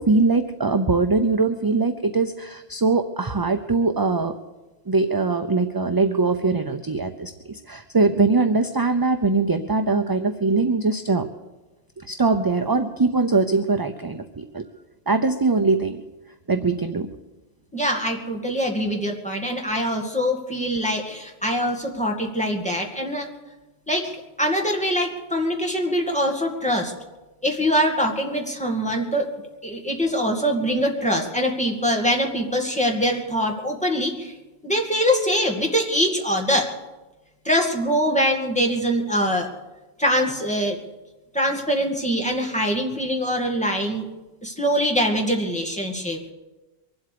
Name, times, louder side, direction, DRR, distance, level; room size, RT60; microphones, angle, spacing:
voice 1, 0.0-4.4 4.9-11.3 12.0-14.6 15.1-16.0 16.5-17.1, right 3 dB, 25° right, 7 dB, 0.6 m, -22 dB
voice 2, 17.7-23.3 23.9-26.9 27.4-29.3 29.6-34.3 34.6-36.7 37.4-39.5 40.0-40.8 41.3-44.1 44.4-46.3, equal, 5° left, 0 dB, 2.2 m, -23 dB
23.5 x 8.1 x 6.8 m, 1.1 s
omnidirectional pair, 1.1 m